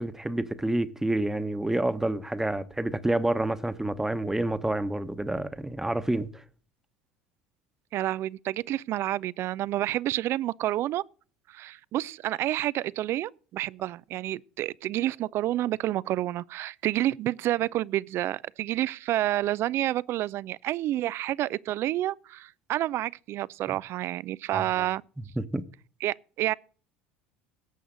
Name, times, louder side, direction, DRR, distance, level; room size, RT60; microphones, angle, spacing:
voice 1, 0.0-6.3 24.5-24.6 25.4-25.6, right 1 dB, 10° right, 1.1 m, -28 dB
voice 2, 7.9-11.0 11.5-25.0 26.0-26.5, right 14 dB, 50° right, 0.4 m, -29 dB
18.0 x 7.8 x 3.9 m
hypercardioid pair, 70°, 6 cm